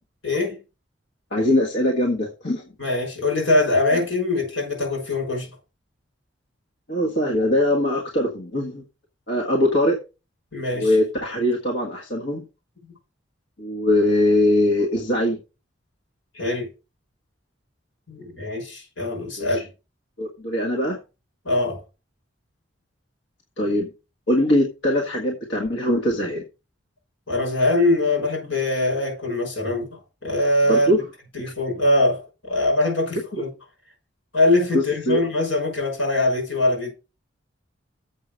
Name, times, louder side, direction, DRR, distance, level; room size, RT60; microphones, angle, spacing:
voice 1, 0.2-0.6 2.8-5.5 10.5-11.0 16.3-16.7 18.1-19.7 21.4-21.8 27.3-30.9 31.3-33.5 34.3-36.9, left 2 dB, 85° left, 6.1 m, -22 dB
voice 2, 1.3-2.6 3.9-4.0 6.9-8.8 9.3-10.0 10.7-12.4 13.6-15.4 18.2-18.3 19.4-19.6 20.2-21.0 23.6-23.9 24.3-26.4 30.7-31.0 33.3-33.4 34.7-35.2, left 1 dB, 65° left, 1.7 m, -21 dB
7.6 x 5.7 x 6.4 m
head